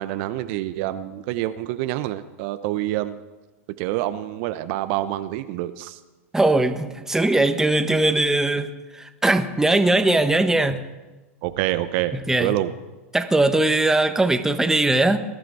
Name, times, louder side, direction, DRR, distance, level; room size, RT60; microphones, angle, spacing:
voice 1, 0.0-3.2 3.8-6.0 11.4-12.7, right 15 dB, 55° right, 0.8 m, -27 dB
voice 2, 6.3-10.8 12.1-12.6 13.1-15.2, right 2 dB, 5° right, 1.3 m, -20 dB
20.5 x 13.0 x 4.7 m
hypercardioid pair, 95°, 8 cm